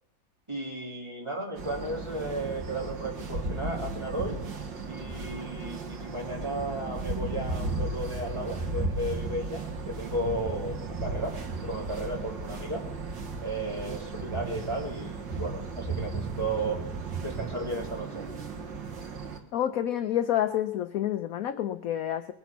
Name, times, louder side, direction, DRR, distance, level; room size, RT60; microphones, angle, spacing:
voice 1, 0.5-4.4 4.9-11.4 11.6-12.8 13.4-16.9 17.2-18.2, right 1 dB, 15° right, -2 dB, 2.7 m, -34 dB
sound 1, 1.6-19.4, right 3 dB, 75° right, 2.3 m, -35 dB
voice 2, 19.5-22.3, left 11 dB, 65° left, 10 dB, 0.9 m, -28 dB
21.0 x 8.2 x 6.0 m, 0.80 s
omnidirectional pair, 2.0 m